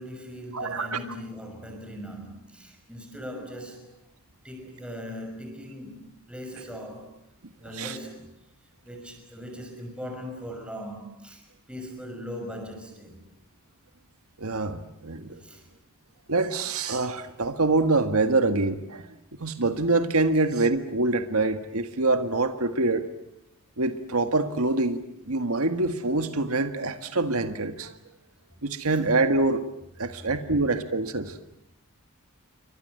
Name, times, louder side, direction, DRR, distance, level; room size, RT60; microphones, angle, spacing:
voice 1, 0.0-3.9 4.4-7.2 7.6-8.3 8.8-13.2 15.4-15.7, equal, 5° right, 6.0 m, -40 dB
voice 2, 0.5-1.0 7.8-8.0 14.4-15.4 16.3-19.1 19.4-23.1 23.8-27.9 28.6-29.6 30.0-31.4, right 3 dB, 80° right, 1.7 m, -25 dB
29.5 x 24.0 x 7.9 m
head